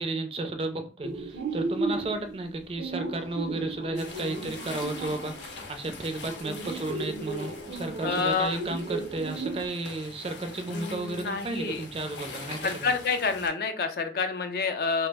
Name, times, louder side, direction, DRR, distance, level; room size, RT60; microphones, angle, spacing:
voice 1, 0.0-12.9, right 2 dB, 30° right, 0.3 m, -33 dB
sound 1, 1.0-5.7 6.2-9.7, right 3 dB, 90° right, 0.6 m, -35 dB
sound 2, 3.9-13.5, left 3 dB, 85° left, 0.7 m, -43 dB
voice 2, 8.0-8.6 10.7-11.8 12.6-15.1, left 4 dB, 55° left, 0.4 m, -28 dB
2.9 x 2.0 x 3.3 m
head